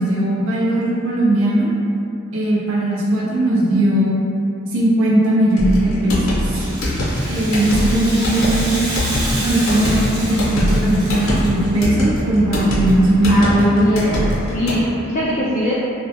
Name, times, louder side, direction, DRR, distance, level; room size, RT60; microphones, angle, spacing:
voice 1, 0.0-1.7 2.3-4.2 4.7-6.6 7.3-8.8 9.4-13.6, right 1 dB, 70° right, -6 dB, 0.4 m, -18 dB
sound 1, 5.6-14.8, equal, 80° left, 0.7 m, -22 dB
Rattle (instrument), 6.3-11.8, equal, 35° right, 0.9 m, -30 dB
voice 2, 13.3-14.3 14.5-15.7, equal, 35° left, -9 dB, 0.3 m, -20 dB
2.1 x 2.1 x 2.7 m, 2.7 s
head